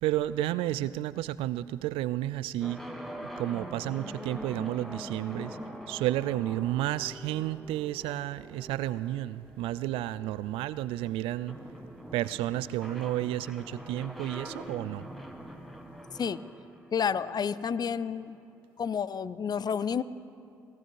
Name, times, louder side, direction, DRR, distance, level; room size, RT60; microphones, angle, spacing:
voice 1, 0.0-2.8 3.2-5.6 5.9-11.6 12.1-15.1, right 14 dB, 75° right, 17 dB, 0.4 m, -31 dB
sound 1, 2.6-18.4, equal, ahead, 1.8 m, -44 dB
voice 2, 16.9-18.4 18.8-20.0, left 7 dB, 45° left, 16 dB, 0.6 m, -30 dB
16.5 x 15.5 x 4.7 m, 2.4 s
hypercardioid pair, 45°, 9 cm